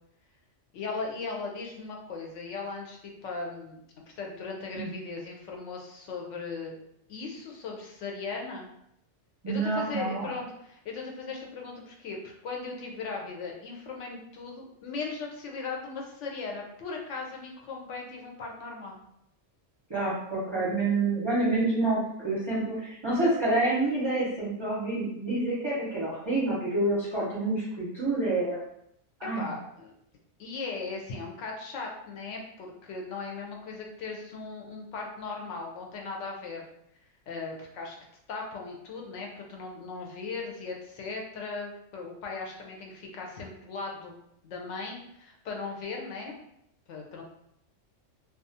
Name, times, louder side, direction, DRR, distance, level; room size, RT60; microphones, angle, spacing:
voice 1, 0.7-3.8 4.2-6.7 7.1-8.7 9.5-19.0 29.4-29.9 30.4-36.7 37.3-37.9 38.3-44.2 44.4-46.3 46.9-47.2, left 4 dB, 75° left, 0 dB, 0.9 m, -38 dB
voice 2, 9.4-10.3 19.9-28.6 29.2-29.4, right 2 dB, 30° right, -8 dB, 0.5 m, -28 dB
2.4 x 2.3 x 2.7 m, 0.76 s
omnidirectional pair, 1.3 m